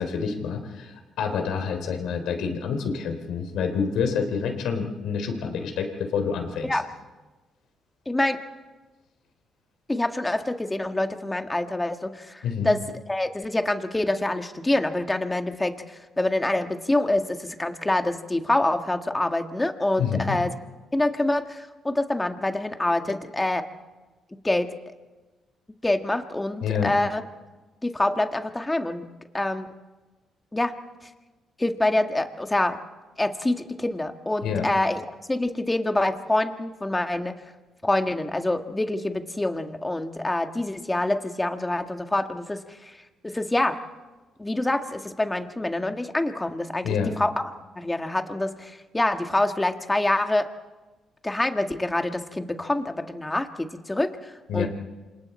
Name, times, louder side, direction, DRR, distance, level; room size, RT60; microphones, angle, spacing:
voice 1, 0.0-6.8 12.4-12.8 20.0-20.4 26.6-26.9 34.4-34.7 46.8-47.1 54.5-54.7, left 6 dB, 85° left, 5 dB, 3.4 m, -27 dB
voice 2, 8.0-8.4 9.9-12.8 13.1-20.5 20.9-23.6 24.4-24.7 25.8-27.2 27.8-29.1 29.3-29.7 30.5-30.7 31.6-32.8 33.2-35.0 35.3-37.3 37.8-43.0 43.2-43.8 44.4-46.9 47.2-47.4 47.7-50.5 51.2-54.7, left 1 dB, 15° left, 6 dB, 1.7 m, -26 dB
29.0 x 26.5 x 4.4 m, 1.2 s
cardioid pair, 90°, 0 cm